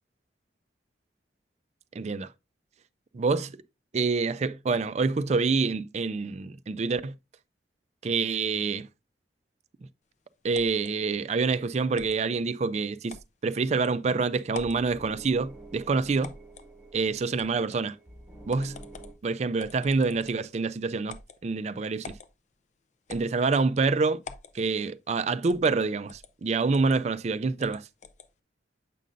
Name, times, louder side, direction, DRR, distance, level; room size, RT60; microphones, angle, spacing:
voice 1, 1.9-2.3 3.1-3.5 3.9-7.2 8.0-8.9 10.4-13.2 13.4-16.3 16.9-18.0 18.5-18.8 19.2-21.2 21.4-22.1 23.1-24.2 24.5-27.9, right 4 dB, 40° right, 0.4 m, -27 dB
sound 1, 10.5-10.9 12.0-12.2 13.1-13.3 13.8-13.9 14.5-14.9 16.2-16.7 17.4-17.8 18.5-19.2 19.6-20.5 21.1-21.4 22.0-22.3 23.1-23.7 24.2-24.6 25.5-25.8 26.1-26.3 26.7-27.0 27.6-28.3, left 4 dB, 40° left, 0.5 m, -45 dB
sound 2, 14.6-19.1, right 1 dB, 5° right, 1.8 m, -49 dB
7.5 x 5.3 x 2.5 m
head